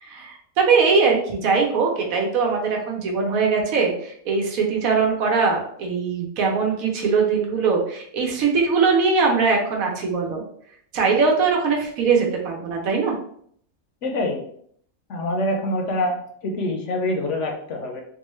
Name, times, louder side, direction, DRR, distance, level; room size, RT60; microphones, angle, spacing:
voice 1, 0.0-10.4 10.9-13.2, right 5 dB, 80° right, 1 dB, 1.2 m, -21 dB
voice 2, 14.0-14.4 15.1-18.0, left 1 dB, 65° left, 2 dB, 0.9 m, -25 dB
3.8 x 2.3 x 3.0 m, 0.64 s
omnidirectional pair, 1.5 m